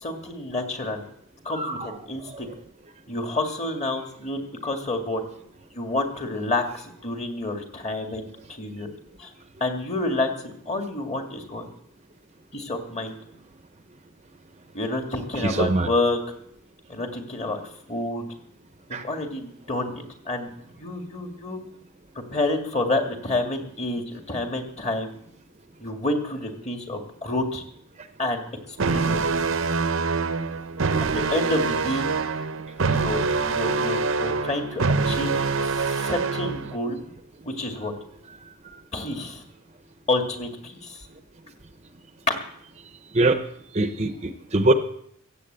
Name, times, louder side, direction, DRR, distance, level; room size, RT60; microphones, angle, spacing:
voice 1, 0.0-1.0 1.5-2.5 3.1-5.2 5.7-8.9 9.2-9.3 9.6-11.7 12.5-13.2 14.7-16.2 16.9-17.6 17.9-18.2 19.0-20.5 20.8-21.6 22.3-25.1 25.8-27.6 28.2-28.4 28.9-29.2 31.0-32.1 33.0-35.3 35.7-37.0 37.4-37.9 38.9-39.4 40.1-41.0, left 2 dB, 30° left, 4 dB, 1.9 m, -29 dB
voice 2, 1.5-1.9 2.3-2.4 15.4-15.9 18.9-19.0 43.1-43.4 43.7-44.7, right 2 dB, 30° right, 9 dB, 0.7 m, -22 dB
sound 1, 28.8-36.8, right 4 dB, 65° right, 0.7 m, -25 dB
15.0 x 8.2 x 8.0 m, 0.70 s
head